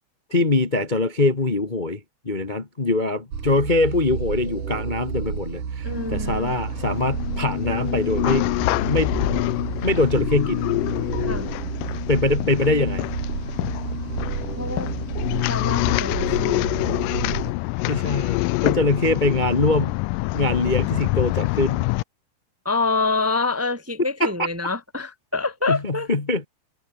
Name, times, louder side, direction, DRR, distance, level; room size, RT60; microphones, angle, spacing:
voice 1, 0.3-8.5 8.9-9.2 9.8-10.6 12.1-13.1 17.9-20.0 20.3-21.9 24.2-24.5 25.7-26.5, left 2 dB, 55° left, 0.5 m, -23 dB
sound 1, 3.3-17.5, right 6 dB, 60° right, 4.9 m, -31 dB
voice 2, 5.8-6.5 11.2-11.5 14.6-14.9 15.5-16.8 22.6-26.1, left 3 dB, 10° right, 0.8 m, -26 dB
sound 2, 5.9-22.0, left 22 dB, 80° left, 2.0 m, -26 dB
omnidirectional pair, 4.1 m